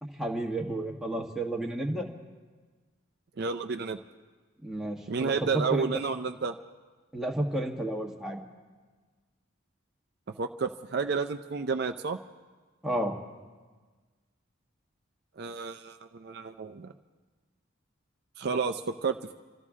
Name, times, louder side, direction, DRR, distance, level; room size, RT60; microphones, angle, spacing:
voice 1, 0.0-2.1 4.6-5.9 7.1-8.4 12.8-13.1, right 1 dB, ahead, 0 dB, 1.3 m, -31 dB
voice 2, 3.4-4.0 5.1-6.5 10.4-12.2 15.4-16.9 18.4-19.3, right 5 dB, 50° right, 7 dB, 0.5 m, -31 dB
27.0 x 13.5 x 3.6 m, 1.4 s
head